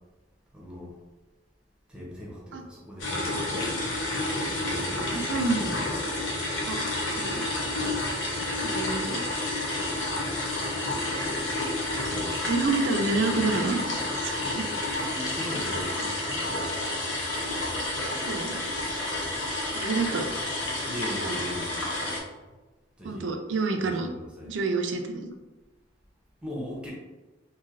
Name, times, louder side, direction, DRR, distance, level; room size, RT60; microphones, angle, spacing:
voice 1, 0.5-0.9 1.9-3.9 4.5-5.2 6.2-6.4 12.1-12.4 14.0-16.7 20.9-21.9 23.0-23.3 23.8-24.5 26.4-26.9, left 1 dB, 5° right, -4 dB, 0.7 m, -40 dB
sound 1, 3.0-22.2, left 2 dB, 85° left, 0.7 m, -30 dB
voice 2, 5.1-5.8 6.7-6.8 7.1-7.4 8.6-9.2 12.5-14.6 18.3-18.6 19.7-20.3 21.2-21.4 23.0-24.1 24.5-25.3, right 3 dB, 70° right, 5 dB, 0.4 m, -28 dB
3.0 x 2.6 x 2.5 m, 1.2 s
head